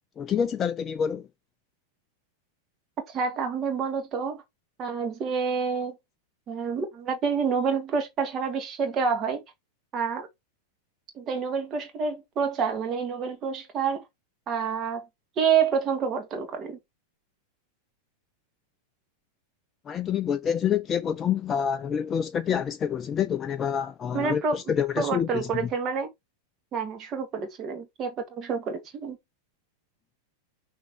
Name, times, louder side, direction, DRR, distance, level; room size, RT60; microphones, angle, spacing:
voice 1, 0.2-1.3 19.9-25.7, left 8 dB, 25° left, 0.4 m, -27 dB
voice 2, 3.1-4.4 4.8-6.0 6.5-9.4 9.9-10.3 11.2-14.0 14.5-15.1 15.4-16.8 24.1-24.6 25.0-26.1 26.7-29.2, right 6 dB, 30° right, 2.0 m, -28 dB
5.9 x 3.5 x 4.6 m
figure-of-eight pair, 90°, 0 cm